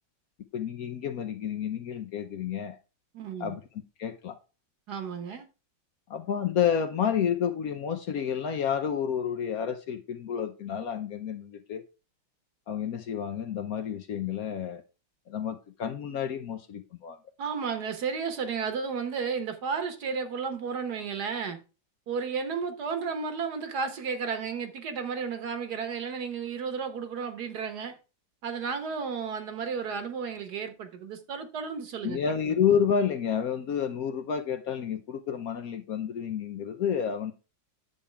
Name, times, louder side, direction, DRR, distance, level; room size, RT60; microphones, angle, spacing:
voice 1, 0.5-2.8 3.4-3.6 4.0-4.4 6.1-11.8 12.7-14.8 15.3-17.2 32.0-37.3, left 8 dB, 65° left, 1.0 m, -30 dB
voice 2, 3.1-3.6 4.9-5.5 17.4-21.6 22.1-27.9 28.4-32.2 32.4-32.5, right 6 dB, 60° right, 1.6 m, -33 dB
9.6 x 7.1 x 3.4 m
omnidirectional pair, 2.0 m